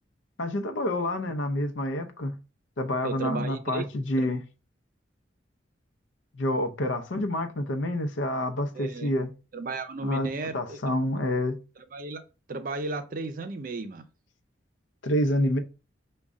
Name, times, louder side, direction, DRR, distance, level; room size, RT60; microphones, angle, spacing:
voice 1, 0.4-2.3 2.8-4.4 6.3-9.3 10.0-10.3 10.5-11.6 15.0-15.6, left 1 dB, 90° left, 0.6 m, -28 dB
voice 2, 3.0-3.8 4.2-4.3 8.7-9.1 9.5-10.8 11.9-12.2 12.5-14.1, right 3 dB, 45° right, 0.5 m, -34 dB
5.1 x 2.3 x 3.6 m
head